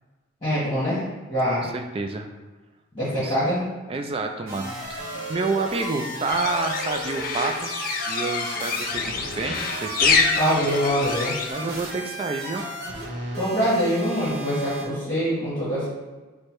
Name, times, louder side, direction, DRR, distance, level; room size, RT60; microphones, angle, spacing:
voice 1, 0.4-1.7 2.9-3.6 10.4-11.4 13.4-15.9, equal, 20° left, -11 dB, 1.4 m, -24 dB
voice 2, 1.6-2.3 3.2-3.4 3.9-7.7 8.1-10.5 11.5-12.6, right 3 dB, 30° right, 4 dB, 0.4 m, -29 dB
sound 1, 4.5-14.8, right 1 dB, 50° right, 1.1 m, -34 dB
sound 2, 6.3-11.5, left 5 dB, 45° left, 0.4 m, -26 dB
4.9 x 2.2 x 4.4 m, 1.3 s
head